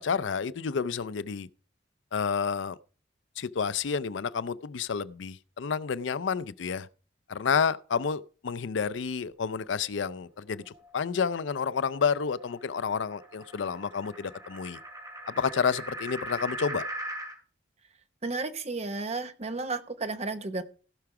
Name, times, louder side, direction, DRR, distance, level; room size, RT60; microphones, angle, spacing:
voice 1, 0.0-1.5 2.1-2.8 3.4-6.9 7.3-10.6 10.9-14.8 15.3-16.8, left 6 dB, 75° left, 0.5 m, -30 dB
sound 1, 10.6-17.4, right 1 dB, 20° right, 2.5 m, -41 dB
voice 2, 18.2-20.6, right 3 dB, 35° right, 1.0 m, -33 dB
16.5 x 5.9 x 4.8 m
head